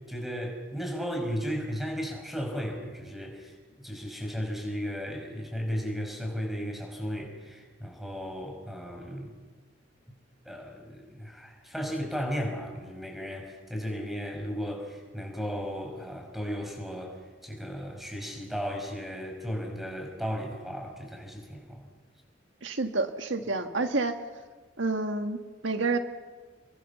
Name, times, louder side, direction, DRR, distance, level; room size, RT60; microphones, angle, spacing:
voice 1, 0.1-9.3 10.4-21.9, equal, ahead, 2 dB, 5.5 m, -35 dB
voice 2, 22.6-24.1 24.8-26.0, right 3 dB, 75° right, 7 dB, 1.6 m, -29 dB
30.0 x 22.0 x 7.1 m, 1.4 s
head